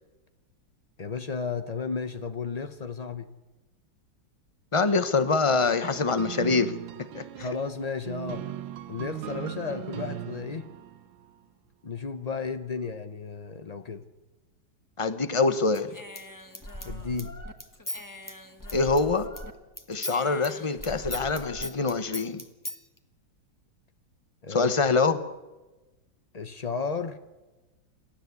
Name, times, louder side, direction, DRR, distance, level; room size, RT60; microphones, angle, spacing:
voice 1, 1.0-3.3 7.4-8.4 8.9-10.7 11.8-14.0 16.8-17.3 24.4-24.7 26.3-27.2, left 5 dB, 70° left, 9 dB, 0.3 m, -33 dB
voice 2, 4.7-7.5 15.0-16.0 18.7-19.3 19.9-22.4 24.5-25.2, left 4 dB, 30° left, 11 dB, 0.6 m, -25 dB
sound 1, 5.9-11.3, right 11 dB, 80° right, 1.6 m, -38 dB
Human voice / Scissors, 15.7-19.5 19.8-22.8, left 1 dB, 10° left, 1.3 m, -39 dB
28.0 x 13.5 x 8.3 m, 1.1 s
omnidirectional pair, 2.1 m